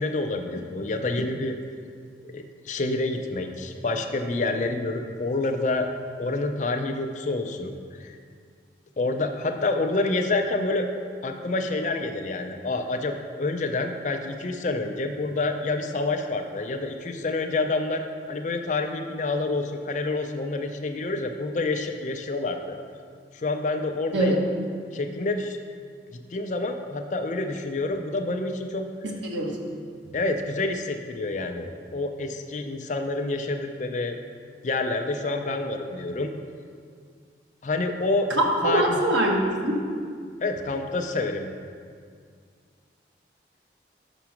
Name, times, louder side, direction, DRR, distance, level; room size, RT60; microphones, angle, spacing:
voice 1, 0.0-1.6 2.2-5.9 6.2-8.2 9.0-10.9 11.2-18.0 18.3-22.8 23.3-24.4 24.9-25.6 26.3-28.9 30.1-34.2 34.6-36.3 37.6-38.3 38.6-39.0 40.4-41.5, left 2 dB, 40° left, 5 dB, 0.5 m, -28 dB
voice 2, 24.1-24.4 29.0-29.7 38.3-39.8, right 1 dB, 90° right, 0 dB, 1.1 m, -24 dB
6.0 x 5.9 x 5.8 m, 2.1 s
head